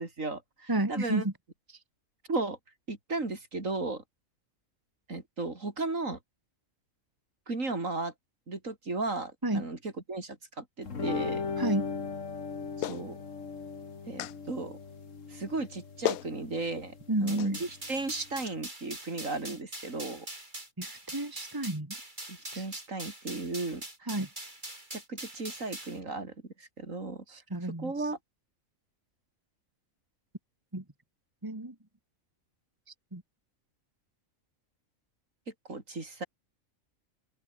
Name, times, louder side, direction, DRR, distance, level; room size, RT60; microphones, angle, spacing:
voice 1, 0.0-1.3 2.3-2.6 2.9-4.0 5.1-6.2 7.5-8.1 8.5-11.5 12.8-13.2 14.1-14.8 15.3-17.0 17.2-20.3 22.3-24.1 24.9-27.4 27.8-28.2 35.7-36.2, right 3 dB, 70° right, 4.2 m, -35 dB
voice 2, 0.7-1.3 9.4-9.7 11.6-11.9 17.1-17.6 20.8-21.9 22.5-22.7 24.1-24.3 27.3-27.9 30.7-30.8 31.4-31.7 33.1-33.2, right 1 dB, 15° right, 2.4 m, -31 dB
sound 1, 10.8-18.6, left 5 dB, 65° left, 2.3 m, -38 dB
Clapping, 12.8-13.0 14.2-14.4 15.6-15.7 16.0-16.3 17.4-17.5, left 13 dB, 90° left, 1.1 m, -32 dB
sound 2, 17.3-26.0, right 1 dB, 35° right, 5.2 m, -43 dB
open air
omnidirectional pair, 1.4 m